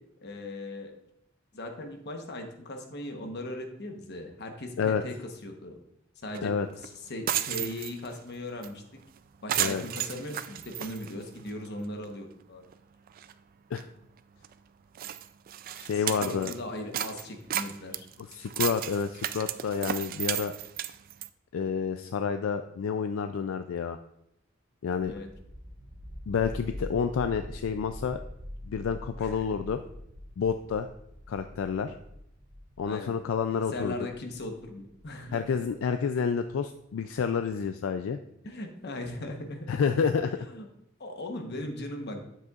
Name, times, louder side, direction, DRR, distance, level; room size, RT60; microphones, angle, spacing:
voice 1, 0.2-0.9 1.5-5.8 6.2-6.5 6.8-8.8 9.4-12.7 15.9-18.1 25.0-25.3 29.2-29.5 32.8-33.1 33.5-35.8 38.4-39.7 40.5-40.7 41.0-42.2, left 1 dB, 55° left, 4 dB, 1.1 m, -38 dB
sound 1, 6.3-6.4 6.8-6.9 7.2-8.2 8.6-8.7 9.0-9.2 9.5-11.7 12.0-12.1 12.7-12.8 13.1-13.3 13.8-13.9 14.4-14.5 15.0-16.6 16.9-21.3, right 12 dB, 45° right, 0.3 m, -33 dB
voice 2, 15.8-16.5 18.3-20.5 21.5-24.0 24.8-25.1 26.3-28.2 28.7-29.8 30.4-30.9 31.3-31.9 32.8-33.9 35.3-38.2 39.7-40.3, left 6 dB, 75° left, 9 dB, 0.4 m, -29 dB
sound 2, 25.0-35.7, left 1 dB, 10° right, 1.2 m, -44 dB
9.3 x 7.6 x 2.4 m, 0.77 s
head